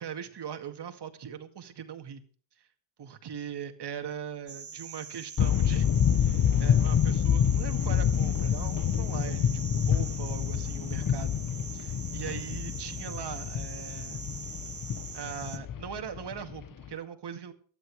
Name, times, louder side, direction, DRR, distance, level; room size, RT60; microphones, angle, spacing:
voice 1, 0.0-2.2 3.0-5.9 6.2-11.4 11.7-14.2 15.1-17.5, right 8 dB, 55° right, 8 dB, 2.1 m, -40 dB
sound 1, 4.5-15.6, right 6 dB, 35° right, 1.8 m, -43 dB
sound 2, 5.4-16.9, left 8 dB, 40° left, 0.9 m, -27 dB
19.0 x 12.5 x 3.5 m, 0.43 s
cardioid pair, 105°, 49 cm